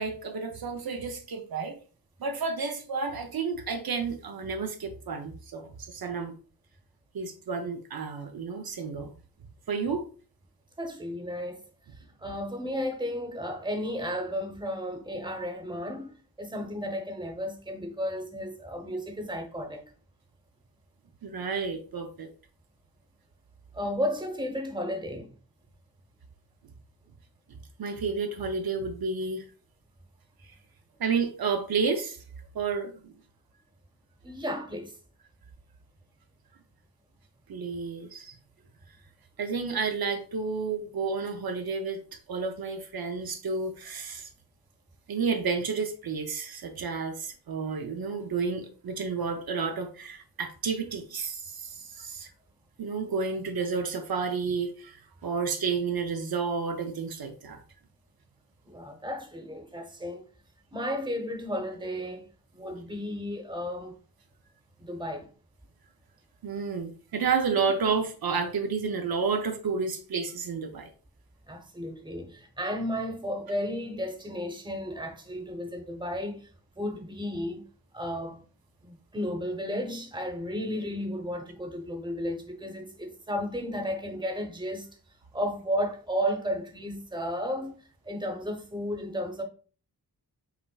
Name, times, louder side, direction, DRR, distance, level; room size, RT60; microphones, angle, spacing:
voice 1, 0.0-1.8 2.2-6.3 7.1-9.1 9.7-10.0 21.2-22.3 27.8-29.4 31.0-32.2 32.5-33.1 37.5-38.3 39.4-42.0 42.3-44.3 45.1-52.3 52.8-57.6 66.4-70.9, right 5 dB, 70° right, 0.6 m, -31 dB
voice 2, 10.8-11.6 12.2-19.9 23.7-25.3 34.2-34.9 58.6-60.2 60.7-62.3 62.5-64.0 64.8-65.3 71.5-76.5 76.7-77.6 77.9-78.4 78.8-84.9 85.3-87.7 88.0-89.4, equal, 10° right, 0.9 m, -33 dB
5.8 x 3.3 x 2.3 m
wide cardioid pair, 110°, 37 cm